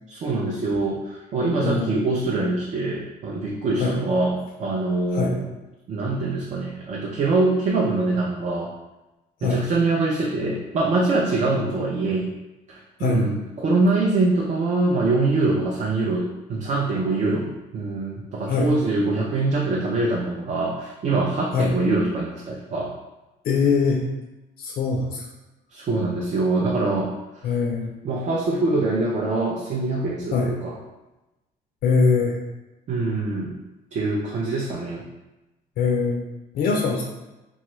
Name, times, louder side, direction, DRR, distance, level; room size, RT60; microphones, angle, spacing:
voice 1, 0.1-5.5 5.9-8.7 9.4-12.3 12.7-23.0 25.7-27.1 27.4-27.5 28.0-30.7 32.9-33.6 33.9-35.1, right 2 dB, 45° right, -2 dB, 0.5 m, -24 dB
voice 2, 1.6-2.0 3.8-3.9 5.1-5.3 9.4-9.6 13.0-13.2 18.5-18.7 21.5-21.7 23.4-24.0 24.6-25.3 27.4-27.9 30.3-30.5 31.8-32.4 35.8-36.2 36.5-37.0, left 4 dB, 65° left, 0 dB, 0.4 m, -22 dB
3.0 x 2.3 x 3.0 m, 1.0 s
cardioid pair, 110°, 17 cm